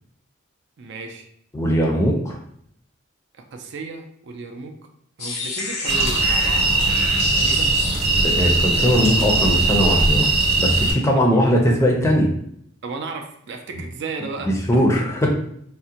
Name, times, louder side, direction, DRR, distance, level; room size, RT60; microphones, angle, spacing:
voice 1, 0.8-1.3 3.5-4.7 5.2-6.7 7.3-7.8 11.1-11.4 12.8-14.8, right 4 dB, 60° right, 4 dB, 0.4 m, -34 dB
voice 2, 1.5-2.4 8.2-10.3 10.6-12.3 14.5-15.3, equal, 15° left, -1 dB, 0.5 m, -19 dB
sound 1, 5.2-8.9, left 3 dB, 85° left, 0.6 m, -31 dB
sound 2, 5.9-10.9, right 3 dB, 30° right, 0.8 m, -19 dB
3.6 x 2.1 x 2.8 m, 0.68 s
head